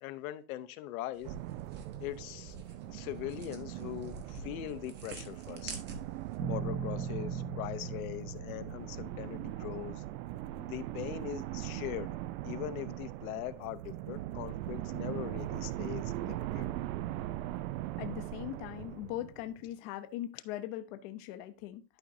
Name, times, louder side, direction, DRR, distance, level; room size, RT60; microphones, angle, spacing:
voice 1, 0.0-1.3 2.0-2.6 2.9-5.7 6.5-10.0 10.6-12.1 12.4-16.7, left 13 dB, 75° left, 0.7 m, -41 dB
sound 1, 1.1-6.4, right 3 dB, 25° right, 0.9 m, -49 dB
sound 2, 1.2-19.7, right 14 dB, 75° right, 0.6 m, -40 dB
sound 3, 6.4-10.5, right 4 dB, 45° right, 1.1 m, -40 dB
voice 2, 18.0-21.8, left 13 dB, 40° left, 0.6 m, -40 dB
11.5 x 5.1 x 2.6 m
supercardioid pair, 180°, 42 cm